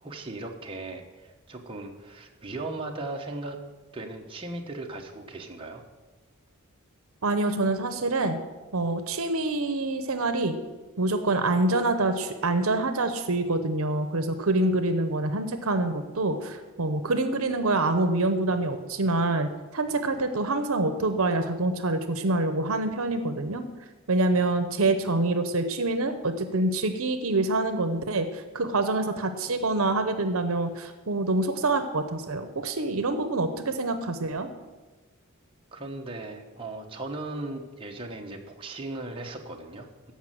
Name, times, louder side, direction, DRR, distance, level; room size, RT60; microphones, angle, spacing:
voice 1, 0.0-3.6 3.9-5.8 35.7-40.1, right 2 dB, 25° right, 1 dB, 1.2 m, -37 dB
voice 2, 7.2-8.4 8.7-10.6 11.0-19.5 19.7-23.6 24.1-34.5, right 2 dB, 70° right, 9 dB, 0.9 m, -26 dB
14.0 x 5.6 x 7.6 m, 1.2 s
head